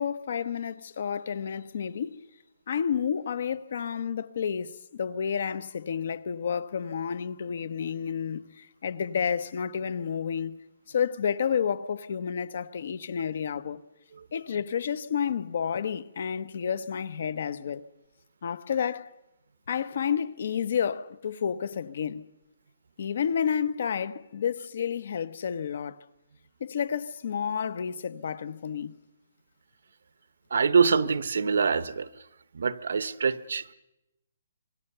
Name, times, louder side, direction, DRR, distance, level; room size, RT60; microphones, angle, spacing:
voice 1, 0.0-2.2 2.7-10.6 10.9-13.8 14.3-17.8 18.4-19.1 19.7-22.3 23.0-26.0 26.6-29.0, left 7 dB, 50° left, 1.0 m, -30 dB
voice 2, 30.5-32.1 32.5-33.7, right 5 dB, 75° right, 1.1 m, -24 dB
26.0 x 22.0 x 6.8 m
hypercardioid pair, 170°, 0 cm